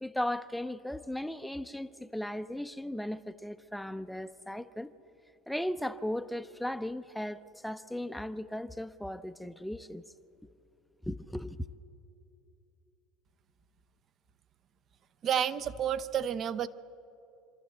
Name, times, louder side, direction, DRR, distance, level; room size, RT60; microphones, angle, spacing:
voice 1, 0.0-4.9 5.5-10.0 11.0-11.7, left 1 dB, 5° left, 0.6 m, -36 dB
voice 2, 15.2-16.7, right 9 dB, 45° right, 0.7 m, -30 dB
26.5 x 12.5 x 7.9 m
hypercardioid pair, 80°, 0 cm